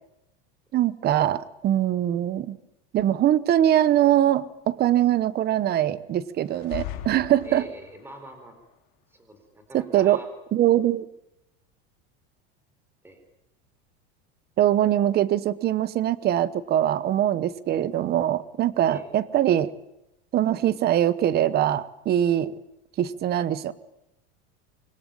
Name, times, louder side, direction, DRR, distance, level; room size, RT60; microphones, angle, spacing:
voice 1, 0.7-2.6 2.9-7.7 9.7-10.2 10.5-11.1 14.6-19.7 20.3-22.5 23.0-23.7, right 12 dB, 30° right, 17 dB, 1.1 m, -22 dB
sound 1, 6.5-8.1, left 13 dB, 60° left, 3.3 m, -38 dB
voice 2, 7.4-8.6 9.1-10.3 13.0-13.2 18.9-19.1, right 1 dB, 5° right, 7 dB, 4.3 m, -44 dB
26.0 x 22.5 x 9.1 m, 0.88 s
cardioid pair, 160°, 33 cm